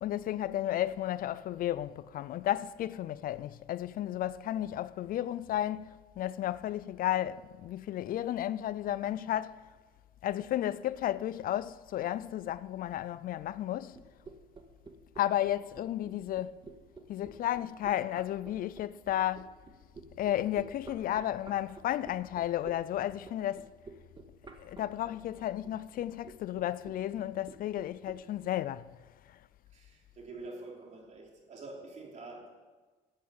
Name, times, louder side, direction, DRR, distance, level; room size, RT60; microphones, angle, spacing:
voice 1, 0.0-9.6 10.2-14.0 15.2-16.6 17.1-19.5 20.2-23.7 24.6-28.9, left 12 dB, 55° left, 0.4 m, -33 dB
sound 1, 13.9-28.2, right 4 dB, 30° right, 1.8 m, -50 dB
voice 2, 29.7-32.5, right 2 dB, 45° right, 3.6 m, -46 dB
12.5 x 8.7 x 8.4 m
cardioid pair, 110°, 17 cm